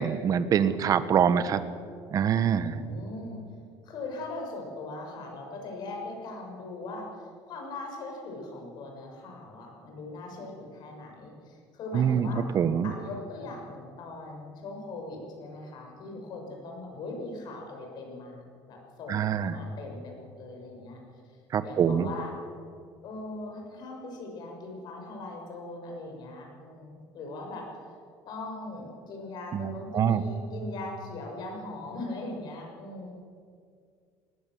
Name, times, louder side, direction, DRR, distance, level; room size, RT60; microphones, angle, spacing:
voice 1, 0.0-1.6 2.1-2.8 11.9-12.3 12.5-12.9 19.1-19.6 21.5-22.1 29.5-30.2, right 8 dB, 45° right, 12 dB, 1.3 m, -25 dB
voice 2, 2.6-3.4 3.8-12.5 12.8-21.0 21.6-22.3 23.0-27.7 28.2-33.1, left 2 dB, 55° left, 1 dB, 6.5 m, -40 dB
20.0 x 19.5 x 7.8 m, 2.2 s
cardioid pair, 135°, 9 cm